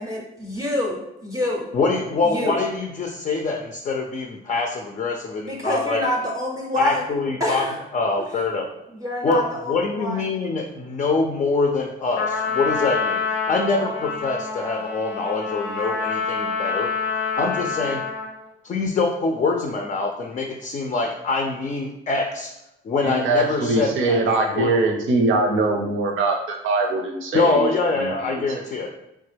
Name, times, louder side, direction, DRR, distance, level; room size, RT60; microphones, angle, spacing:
voice 1, 0.0-1.7 2.2-2.6 5.4-7.8 8.9-10.4, left 1 dB, 15° right, -2 dB, 0.6 m, -27 dB
voice 2, 1.7-6.0 6.8-7.6 7.9-8.7 9.2-9.4 9.7-13.2 13.5-16.9 17.4-18.0 18.6-22.5 22.8-24.2 24.6-24.7 27.3-28.9, left 3 dB, 35° left, 2 dB, 0.4 m, -24 dB
Trumpet, 12.2-18.4, left 5 dB, 80° left, 0.6 m, -27 dB
voice 3, 23.0-27.7 27.9-28.7, right 3 dB, 80° right, 3 dB, 0.6 m, -22 dB
3.2 x 2.2 x 3.2 m, 0.87 s
cardioid pair, 90°, 20 cm